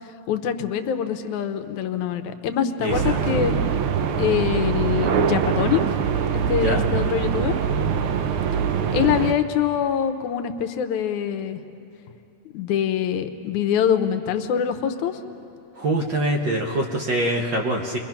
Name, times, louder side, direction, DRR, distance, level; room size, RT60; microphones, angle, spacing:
voice 1, 0.3-3.5 4.2-6.0 6.5-7.5 8.9-11.6 12.5-15.2, left 9 dB, 85° left, 8 dB, 2.3 m, -24 dB
voice 2, 2.8-3.4 6.6-6.8 15.8-18.0, right 1 dB, 55° right, 1 dB, 1.4 m, -24 dB
sound 1, 2.9-9.3, right 7 dB, 70° right, 1.3 m, -23 dB
29.5 x 22.5 x 5.9 m, 2.7 s
omnidirectional pair, 3.3 m